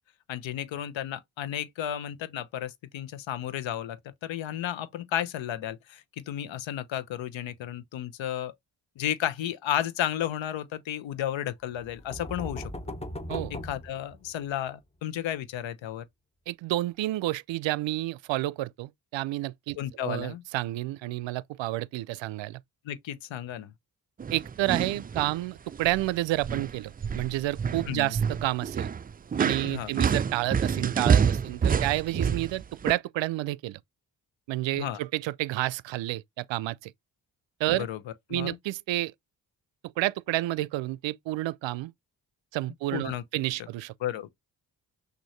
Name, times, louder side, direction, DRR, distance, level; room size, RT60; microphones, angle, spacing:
voice 1, 0.3-8.5 9.0-12.9 13.5-16.0 19.8-20.4 22.8-23.7 27.9-28.1 29.6-29.9 34.7-35.0 37.7-38.0 38.3-38.6 42.9-43.2 44.0-44.3, left 11 dB, 70° left, 0.9 m, -33 dB
sound 1, 11.7-14.7, left 1 dB, 15° left, 0.9 m, -38 dB
voice 2, 16.5-22.6 24.3-28.9 29.4-33.8 34.5-36.9 37.6-37.9 38.3-39.1 40.0-41.9 42.5-43.9, right 16 dB, 70° right, 0.5 m, -30 dB
sound 2, 24.2-25.4 25.7-26.1 26.4-32.9, right 7 dB, 20° right, 0.3 m, -27 dB
6.1 x 2.7 x 3.2 m
supercardioid pair, 40°, 47 cm